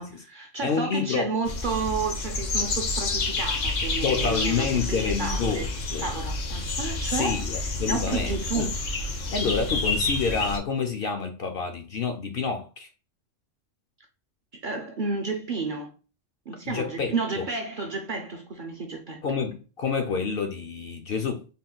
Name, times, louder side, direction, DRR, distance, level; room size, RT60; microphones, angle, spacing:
voice 1, 0.0-5.7 6.0-8.8 14.6-15.9 16.5-19.2, right 4 dB, 55° right, 0.6 m, -31 dB
voice 2, 0.6-1.3 4.0-6.1 7.1-8.7 9.3-12.9 16.7-17.5 19.2-21.5, left 5 dB, 60° left, 0.6 m, -28 dB
sound 1, 1.4-10.6, left 3 dB, 75° left, 1.2 m, -29 dB
3.7 x 2.2 x 3.8 m
omnidirectional pair, 1.3 m